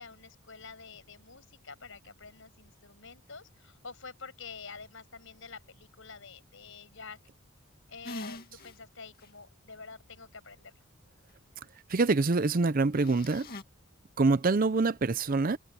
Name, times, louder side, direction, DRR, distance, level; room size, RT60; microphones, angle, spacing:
voice 1, 0.0-7.2 7.9-10.8, left 5 dB, 65° left, 6.4 m, -48 dB
sound 1, 8.0-8.8 9.2-9.3 13.0-13.6, left 2 dB, 45° left, 2.3 m, -42 dB
voice 2, 11.9-13.5 14.2-15.6, right 3 dB, 40° right, 0.6 m, -25 dB
head